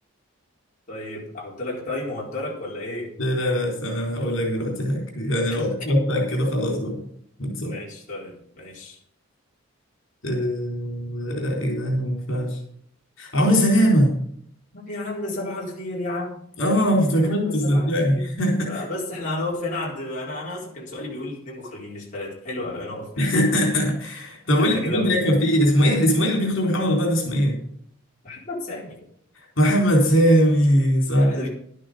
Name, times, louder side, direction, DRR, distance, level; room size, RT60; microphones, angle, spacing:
voice 1, 0.9-3.1 5.5-5.6 7.6-9.0 14.7-16.4 17.1-18.4 18.7-23.1 24.6-25.2 28.2-29.0 31.2-31.5, left 2 dB, 40° left, -4 dB, 4.2 m, -32 dB
voice 2, 3.2-7.1 7.4-7.8 10.2-12.6 13.2-14.2 16.6-18.8 23.2-27.6 29.3-31.4, equal, 65° left, 1 dB, 4.2 m, -21 dB
12.0 x 10.0 x 5.2 m, 0.67 s
head